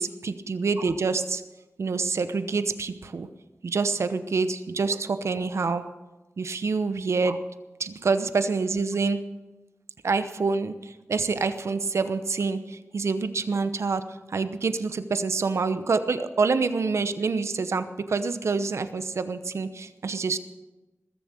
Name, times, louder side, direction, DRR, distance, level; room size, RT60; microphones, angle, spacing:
voice 1, 0.0-1.4 1.8-3.3 3.6-5.8 6.4-7.4 7.8-9.2 10.0-20.4, right 4 dB, 75° right, 11 dB, 0.9 m, -27 dB
20.5 x 7.4 x 7.4 m, 1.1 s
wide cardioid pair, 75°, 5 cm